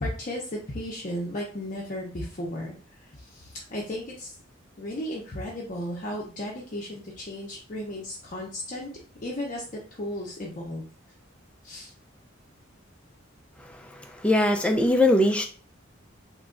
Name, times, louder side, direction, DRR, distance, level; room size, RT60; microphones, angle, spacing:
voice 1, 0.0-2.8 3.2-4.3 4.8-8.9 9.2-9.6 10.0-10.9 11.6-11.9, left 1 dB, 40° left, -3 dB, 0.6 m, -34 dB
voice 2, 13.6-15.5, left 1 dB, 5° left, 4 dB, 0.3 m, -22 dB
3.0 x 2.3 x 3.6 m, 0.41 s
head